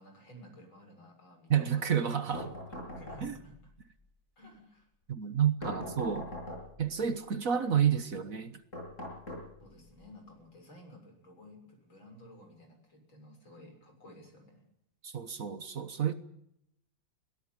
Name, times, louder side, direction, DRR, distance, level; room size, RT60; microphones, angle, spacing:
voice 1, 0.0-2.3 2.9-3.7 4.4-4.9 9.6-14.6, left 1 dB, 90° left, 7.6 m, -54 dB
voice 2, 1.5-2.5 3.2-3.3 5.1-6.3 6.8-8.6 15.0-16.1, right 8 dB, 50° right, 1.5 m, -30 dB
sound 1, 2.3-3.6 5.6-6.9 8.7-9.9, left 1 dB, 40° left, 8.2 m, -42 dB
22.0 x 17.5 x 9.0 m
omnidirectional pair, 2.1 m